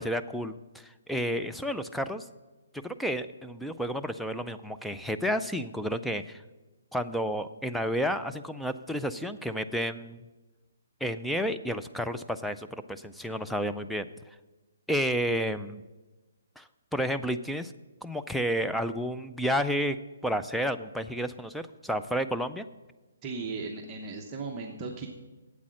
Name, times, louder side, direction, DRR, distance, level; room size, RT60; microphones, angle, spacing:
voice 1, 0.0-2.2 2.8-6.4 6.9-10.2 11.0-14.1 14.9-15.8 16.6-17.7 18.0-20.0 20.2-22.7, equal, ahead, 8 dB, 0.3 m, -31 dB
voice 2, 23.2-25.1, right 4 dB, 20° right, -1 dB, 0.8 m, -36 dB
8.5 x 8.3 x 6.2 m, 1.2 s
hypercardioid pair, 160°, 0 cm